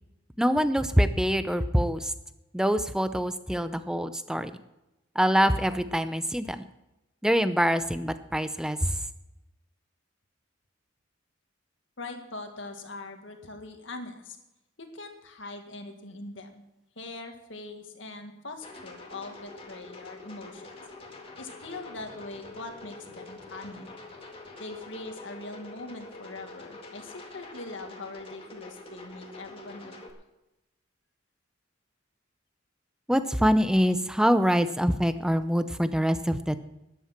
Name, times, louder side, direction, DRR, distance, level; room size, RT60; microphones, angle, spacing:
voice 1, 0.4-2.1 2.5-4.5 5.2-6.6 7.2-9.0 33.1-36.6, equal, 5° right, 11 dB, 0.6 m, -25 dB
voice 2, 12.0-14.4 14.8-16.6 17.0-20.8 21.4-23.9 24.6-30.0, left 2 dB, 70° left, 5 dB, 1.9 m, -42 dB
sound 1, 18.6-30.1, left 2 dB, 30° left, 1.9 m, -46 dB
13.5 x 10.5 x 5.9 m, 0.96 s
head